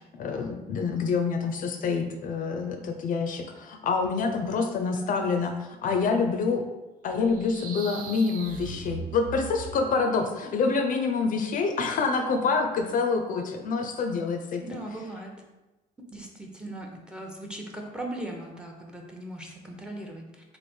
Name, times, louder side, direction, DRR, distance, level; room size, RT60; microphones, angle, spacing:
voice 1, 0.2-5.5 5.8-6.6 7.0-14.6, left 4 dB, 55° left, 5 dB, 0.5 m, -27 dB
sound 1, 7.2-10.1, right 5 dB, 55° right, 0.5 m, -39 dB
voice 2, 14.6-15.3 16.1-20.6, right 1 dB, 5° right, 1 dB, 0.6 m, -39 dB
3.2 x 2.5 x 4.3 m, 1.1 s
cardioid pair, 110°, 17 cm